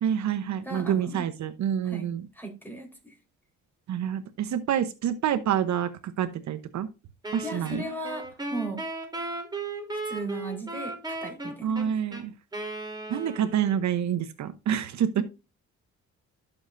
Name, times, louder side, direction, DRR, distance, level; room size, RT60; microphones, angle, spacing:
voice 1, 0.0-2.3 3.9-5.9 6.2-6.9 7.3-7.8 11.6-12.3 13.1-15.2, right 9 dB, 65° right, 10 dB, 0.9 m, -27 dB
voice 2, 0.6-1.3 1.8-2.1 2.3-3.1 7.4-8.8 9.9-11.8 15.1-15.2, right 1 dB, 5° left, 2 dB, 4.3 m, -36 dB
Wind instrument woodwind instrument, 7.2-13.8, right 2 dB, 15° right, 3.4 m, -36 dB
12.5 x 7.2 x 2.6 m, 0.28 s
cardioid pair, 90°, 30 cm